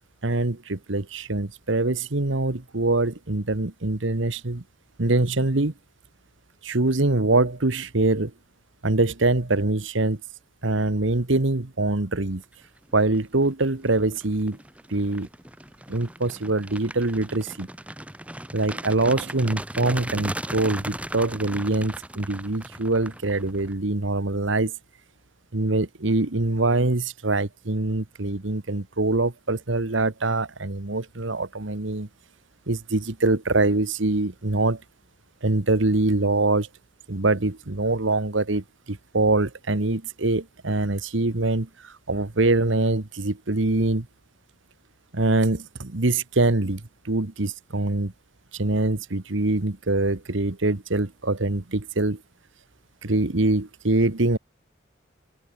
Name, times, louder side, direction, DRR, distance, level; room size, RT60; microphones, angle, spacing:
voice 1, 0.2-4.6 5.0-5.7 6.6-8.3 8.8-10.2 10.6-12.4 12.9-14.6 14.9-15.3 15.9-17.7 18.5-24.7 25.5-32.1 32.7-34.8 35.4-36.7 37.1-44.1 45.1-46.8 47.0-48.1 48.5-52.2 53.0-54.4, right 2 dB, 70° right, 1.4 m, -24 dB
sound 1, 12.9-13.2 13.6-23.7, right 1 dB, 5° right, 7.5 m, -37 dB
open air
head